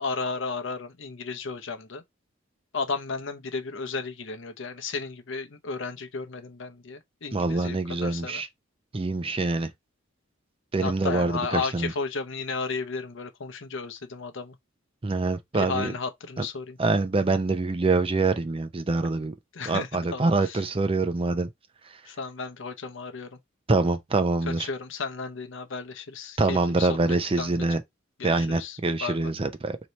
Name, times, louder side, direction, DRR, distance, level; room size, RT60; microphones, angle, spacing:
voice 1, 0.0-2.0 2.7-8.4 10.8-14.6 15.5-16.8 19.5-20.6 22.1-23.4 24.4-27.0 27.4-27.8 28.2-29.2, left 4 dB, 65° left, 0.7 m, -34 dB
voice 2, 7.3-8.5 8.9-9.7 10.7-11.9 15.0-15.9 16.4-16.5 16.8-19.3 19.7-21.5 23.7-24.7 26.4-27.8 28.2-29.8, right 3 dB, 30° right, 0.5 m, -25 dB
3.2 x 2.9 x 4.0 m
head